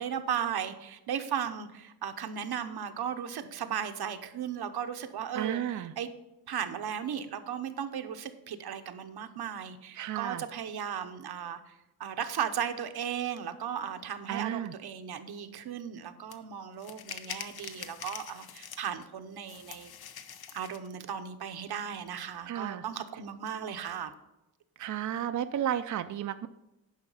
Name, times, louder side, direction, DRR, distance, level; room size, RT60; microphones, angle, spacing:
voice 1, 0.0-6.1 6.5-11.7 12.0-19.9 20.5-24.1, right 8 dB, 80° right, 8 dB, 0.9 m, -36 dB
voice 2, 5.3-5.9 10.0-10.4 14.3-14.7 22.5-22.8 24.8-26.5, right 10 dB, 50° right, 9 dB, 0.4 m, -32 dB
sound 1, 16.3-16.4 16.8-19.0 19.4-20.9, left 8 dB, 75° left, 0.8 m, -44 dB
10.5 x 5.7 x 5.5 m, 0.95 s
wide cardioid pair, 140°, 38 cm